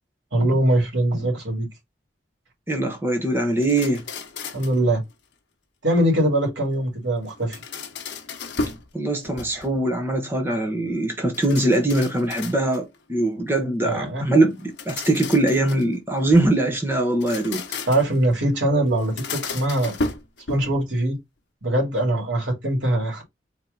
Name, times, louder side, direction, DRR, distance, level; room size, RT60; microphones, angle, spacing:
voice 1, 0.3-1.7 4.5-5.0 5.8-7.6 13.8-14.2 17.9-19.9 20.5-21.2 21.6-23.2, right 1 dB, 75° right, 2.5 m, -22 dB
voice 2, 2.7-4.0 8.9-17.6, right 1 dB, 10° right, 0.9 m, -22 dB
sound 1, 3.6-4.8 7.3-8.9 9.2-9.9 11.3-13.0 14.5-16.6 17.1-18.2 19.0-20.8, left 3 dB, 70° left, 0.9 m, -33 dB
4.4 x 2.9 x 3.9 m
head